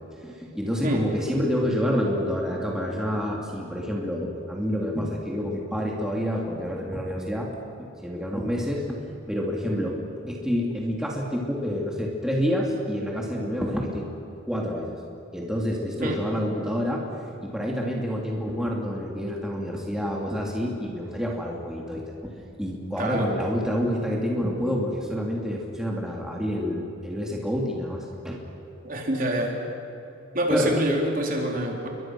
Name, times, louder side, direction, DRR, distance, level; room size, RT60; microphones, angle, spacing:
voice 1, 0.2-7.5 7.8-9.0 9.3-14.1 14.5-15.0 15.3-17.1 17.4-22.3 22.6-28.4 30.5-30.7, equal, 5° right, -2 dB, 2.9 m, -28 dB
voice 2, 23.0-23.3 28.8-29.5 30.3-31.9, right 1 dB, 45° right, 0 dB, 4.0 m, -26 dB
29.5 x 24.0 x 6.2 m, 2.9 s
head